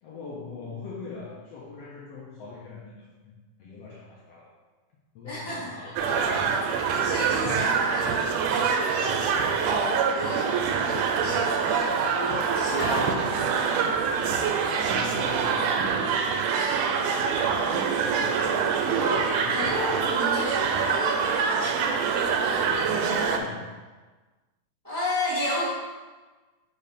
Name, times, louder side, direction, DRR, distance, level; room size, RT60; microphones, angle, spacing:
voice 1, 0.0-3.3 3.6-4.5 5.1-5.9 14.1-14.3 14.7-17.9 19.2-19.6 22.6-23.7, left 4 dB, 65° left, -5 dB, 1.7 m, -42 dB
voice 2, 5.2-6.4 7.0-9.8 10.1-13.6 19.0-22.9 24.8-25.7, left 1 dB, 10° right, -9 dB, 1.2 m, -33 dB
sound 1, 6.0-23.4, right 6 dB, 90° right, 2.1 m, -25 dB
5.2 x 4.6 x 5.2 m, 1.3 s
omnidirectional pair, 3.5 m